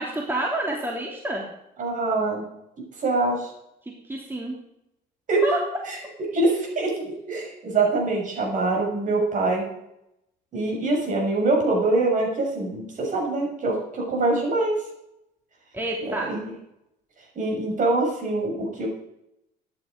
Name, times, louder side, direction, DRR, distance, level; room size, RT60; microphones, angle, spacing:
voice 1, 0.0-1.4 3.8-4.6 5.4-5.6 15.7-16.3, right 1 dB, 10° right, -1 dB, 3.0 m, -28 dB
voice 2, 1.8-2.5 3.0-3.5 5.3-5.4 6.3-9.6 10.5-14.7 16.3-16.5 17.3-18.9, right 2 dB, 50° right, 1 dB, 6.5 m, -24 dB
14.0 x 11.0 x 5.2 m, 0.83 s
cardioid pair, 110°, 17 cm